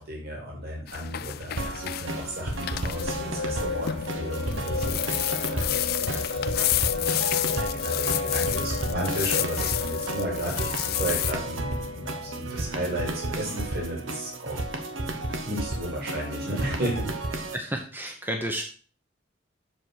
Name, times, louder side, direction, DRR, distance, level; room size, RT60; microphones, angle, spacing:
voice 1, 0.0-6.5 7.4-14.6 15.5-17.5, right 1 dB, 50° right, -2 dB, 3.0 m, -34 dB
sound 1, 0.9-11.3, left 14 dB, 50° left, 0.3 m, -31 dB
sound 2, 1.6-17.6, right 2 dB, 75° right, 1.3 m, -33 dB
sound 3, 3.0-13.1, left 4 dB, 75° left, 0.8 m, -34 dB
voice 2, 17.5-18.6, right 1 dB, 10° right, 2 dB, 0.9 m, -31 dB
7.4 x 5.0 x 6.3 m, 0.40 s
head